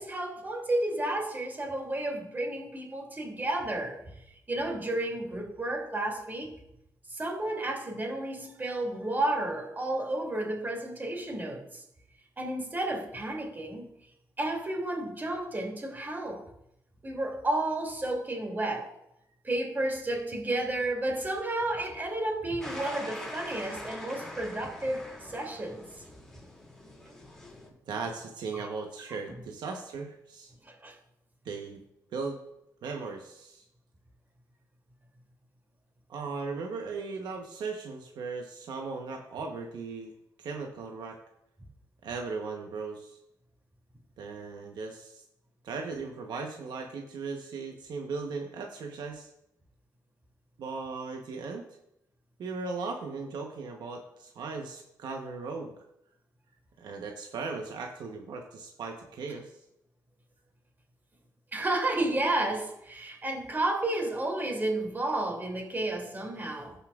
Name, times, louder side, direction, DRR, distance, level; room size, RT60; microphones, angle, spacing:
voice 1, 0.0-4.0 4.5-6.5 7.1-11.8 12.4-13.8 14.4-16.4 17.0-18.9 19.4-25.8 28.5-28.6 30.6-30.9 61.5-66.7, right 1 dB, 25° right, 1 dB, 2.7 m, -32 dB
sound 1, 22.6-27.7, left 1 dB, 5° left, 2.6 m, -43 dB
voice 2, 27.8-30.5 31.4-31.8 32.1-32.4 32.8-33.6 36.1-40.1 40.4-41.2 42.0-43.2 44.2-45.2 45.6-49.3 50.6-51.7 52.4-55.7 56.8-59.5, right 4 dB, 80° right, 2 dB, 1.0 m, -37 dB
16.5 x 5.6 x 2.4 m, 0.80 s
cardioid pair, 85°, 7 cm